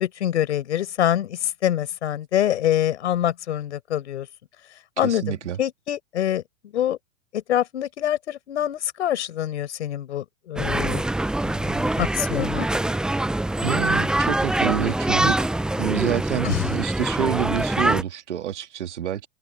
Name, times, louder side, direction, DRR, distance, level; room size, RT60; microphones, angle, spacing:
voice 1, 0.0-4.3 4.7-6.4 6.7-7.0 7.3-11.1 11.4-12.7 16.4-16.7, left 11 dB, 75° left, 5.5 m, -25 dB
voice 2, 5.0-5.6 13.6-19.3, right 10 dB, 80° right, 1.9 m, -28 dB
sound 1, 10.6-18.0, right 1 dB, ahead, 0.5 m, -24 dB
hypercardioid pair, 115°, 35 cm